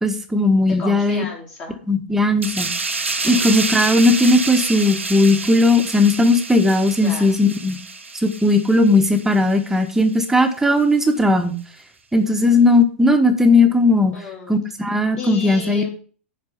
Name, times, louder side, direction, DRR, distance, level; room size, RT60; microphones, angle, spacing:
voice 1, 0.0-1.2 1.9-2.7 3.2-7.8 8.2-11.6 12.1-14.1 14.5-15.8, left 2 dB, 5° right, 6 dB, 1.5 m, -17 dB
voice 2, 0.7-1.8 3.2-3.5 7.0-7.3 14.1-14.5 15.2-15.9, left 3 dB, 35° left, -4 dB, 3.5 m, -33 dB
sound 1, 2.4-9.6 9.9-10.2, right 3 dB, 85° right, 1.2 m, -28 dB
10.5 x 4.8 x 7.1 m, 0.40 s
figure-of-eight pair, 100°, 7 cm